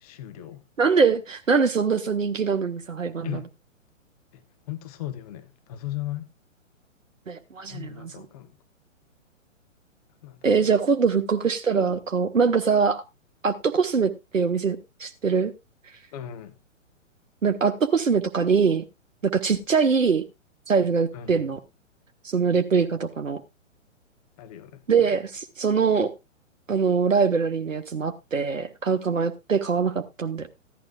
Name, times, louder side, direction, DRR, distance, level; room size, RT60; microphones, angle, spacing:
voice 1, 0.0-0.6 3.2-3.5 4.3-6.3 7.7-8.5 10.2-10.4 16.1-16.6 21.1-21.4 24.4-25.1, left 13 dB, 30° left, 0.9 m, -37 dB
voice 2, 0.8-3.4 7.3-8.1 10.4-13.0 13.4-15.5 17.4-18.8 19.2-20.2 20.7-21.6 22.3-23.4 24.9-26.1 26.7-30.5, right 5 dB, 75° right, 1.0 m, -23 dB
15.5 x 11.5 x 2.3 m
figure-of-eight pair, 120°, 39 cm